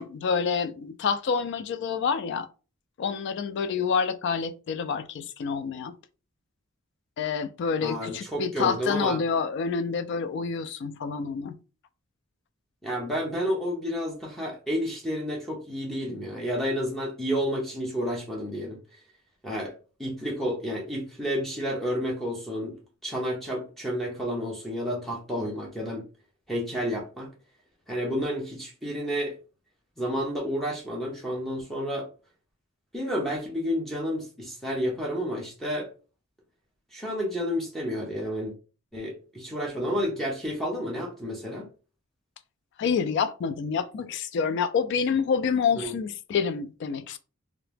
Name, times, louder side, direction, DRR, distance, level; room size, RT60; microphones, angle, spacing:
voice 1, 0.0-2.5 3.0-6.0 7.2-11.6 42.8-47.2, left 6 dB, 55° left, 0.3 m, -28 dB
voice 2, 7.8-9.2 12.8-18.8 19.4-19.7 20.0-26.0 26.5-27.3 27.9-29.3 30.0-32.1 32.9-35.9 36.9-38.5 38.9-41.7 45.8-45.9, equal, ahead, 0.7 m, -30 dB
2.7 x 2.0 x 3.2 m
head